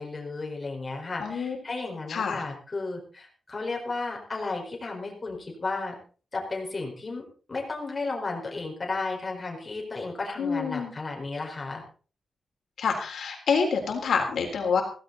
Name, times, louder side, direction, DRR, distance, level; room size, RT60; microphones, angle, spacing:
voice 1, 0.0-5.9 6.3-7.2 7.5-11.8, left 3 dB, 25° left, 0 dB, 4.7 m, -33 dB
voice 2, 1.2-1.6 2.1-2.4 10.4-10.9 12.8-14.8, left 5 dB, 70° left, 2 dB, 3.6 m, -27 dB
16.0 x 15.5 x 4.1 m, 0.39 s
wide cardioid pair, 175°, 0 cm